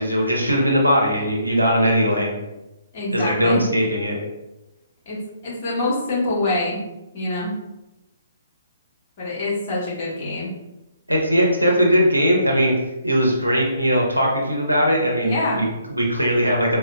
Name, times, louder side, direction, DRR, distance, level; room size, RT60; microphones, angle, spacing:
voice 1, 0.0-2.3 3.1-4.2 11.1-12.7 13.0-16.8, equal, 85° right, -2 dB, 0.8 m, -19 dB
voice 2, 2.9-3.6 5.1-5.2 5.4-6.8 7.1-7.5 9.2-10.5 15.2-15.6, left 2 dB, 40° left, -5 dB, 1.3 m, -25 dB
4.2 x 2.3 x 2.2 m, 0.96 s
figure-of-eight pair, 125°, 0 cm